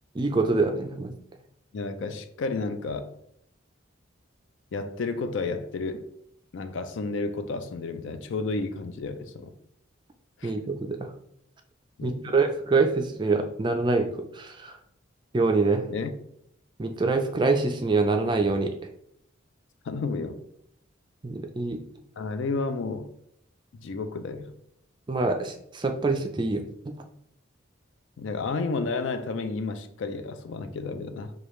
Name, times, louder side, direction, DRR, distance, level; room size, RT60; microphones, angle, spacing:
voice 1, 0.1-1.1 10.4-11.0 12.0-14.8 15.3-15.8 16.8-18.7 21.2-21.8 25.1-26.6, right 3 dB, 20° right, 0.3 m, -25 dB
voice 2, 1.7-3.1 4.7-6.1 6.5-9.5 10.4-10.6 12.0-12.4 15.9-16.1 19.8-20.4 22.2-23.1 23.7-24.5 28.2-31.3, left 3 dB, 70° left, 0.4 m, -31 dB
4.8 x 2.3 x 3.0 m
head